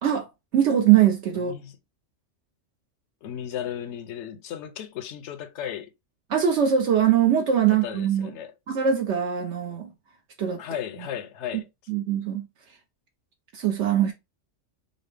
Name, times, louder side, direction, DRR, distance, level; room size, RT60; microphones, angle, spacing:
voice 1, 0.5-1.5 6.3-8.3 8.7-9.9 10.4-10.6 11.9-12.5 13.5-14.1, right 9 dB, 70° right, 1.0 m, -22 dB
voice 2, 1.3-1.8 3.2-5.9 7.8-8.5 10.6-11.7, left 9 dB, 70° left, 0.9 m, -35 dB
5.2 x 2.0 x 3.3 m
omnidirectional pair, 1.3 m